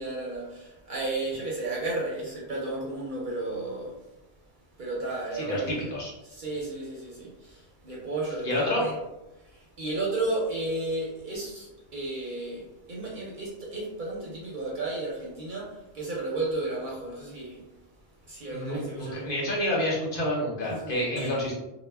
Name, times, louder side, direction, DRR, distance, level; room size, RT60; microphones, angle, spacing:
voice 1, 0.0-3.9 4.8-5.8 6.2-8.9 9.5-17.6 18.3-19.2 20.7-21.4, right 2 dB, 55° right, -4 dB, 0.6 m, -33 dB
voice 2, 5.3-6.1 8.4-8.8 18.5-21.5, left 1 dB, 55° left, -4 dB, 0.7 m, -29 dB
2.1 x 2.1 x 3.2 m, 0.99 s
omnidirectional pair, 1.2 m